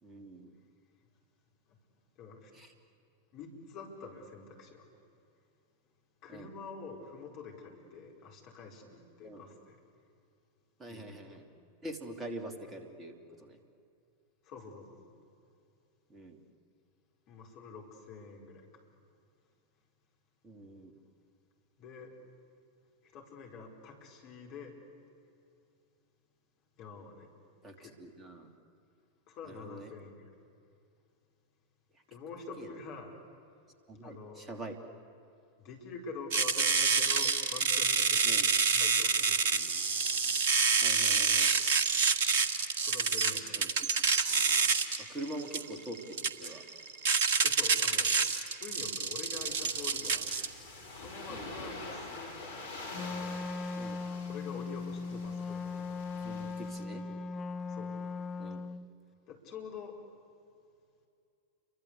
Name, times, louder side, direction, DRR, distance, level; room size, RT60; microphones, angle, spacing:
voice 1, 0.0-0.5 2.5-2.7 6.3-6.5 9.2-9.4 10.8-11.5 11.8-13.6 16.1-16.4 20.4-20.9 27.6-28.5 29.4-29.9 31.9-32.0 32.6-32.7 33.9-34.8 38.2-38.5 40.8-41.5 43.6-43.9 45.0-46.6 51.3-51.5 53.8-54.0 55.1-55.2 56.2-57.0 58.4-58.6, right 1 dB, 20° right, 6 dB, 3.1 m, -44 dB
voice 2, 2.2-2.5 3.3-4.9 6.2-9.8 10.9-11.5 14.4-15.1 17.3-18.7 21.8-22.1 23.1-24.8 26.8-27.3 27.8-28.0 29.3-30.2 32.1-33.1 34.0-34.4 35.6-39.7 42.8-43.8 47.4-48.1 48.6-50.3 50.9-52.7 53.0-53.5 54.3-56.1 56.8-57.3 57.7-57.9 59.3-60.0, left 4 dB, 40° left, 1 dB, 5.0 m, -46 dB
sound 1, 36.3-50.5, right 5 dB, 55° right, 1.6 m, -28 dB
sound 2, 49.4-56.8, left 2 dB, 70° left, 4.2 m, -46 dB
Wind instrument woodwind instrument, 52.9-58.9, left 4 dB, 20° left, 0.8 m, -38 dB
29.5 x 24.0 x 8.4 m, 2.5 s
figure-of-eight pair, 90°, 0 cm